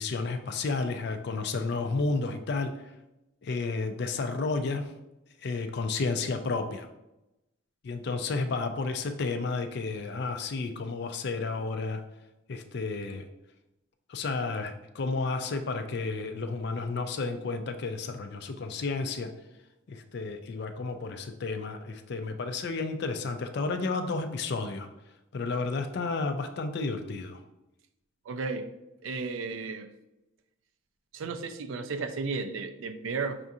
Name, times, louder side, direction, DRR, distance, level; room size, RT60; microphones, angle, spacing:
voice 1, 0.0-2.7 3.4-4.9 5.4-6.9 7.8-12.0 12.5-13.3 14.1-19.3 19.9-24.9 25.3-27.4, left 3 dB, 55° left, 0.4 m, -31 dB
voice 2, 28.3-28.7 29.0-29.9 31.1-33.4, right 4 dB, 75° right, 0.4 m, -34 dB
5.7 x 2.4 x 2.7 m
head